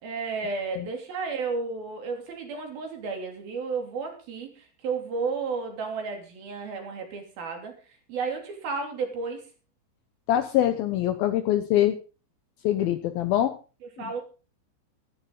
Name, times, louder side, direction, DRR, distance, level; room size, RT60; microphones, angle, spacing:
voice 1, 0.0-7.7 8.1-9.4 14.0-14.2, right 4 dB, 55° right, 4 dB, 4.8 m, -32 dB
voice 2, 10.3-12.0 12.6-13.6 14.0-14.1, left 12 dB, 75° left, 10 dB, 2.3 m, -24 dB
14.5 x 14.0 x 3.9 m, 0.33 s
omnidirectional pair, 5.2 m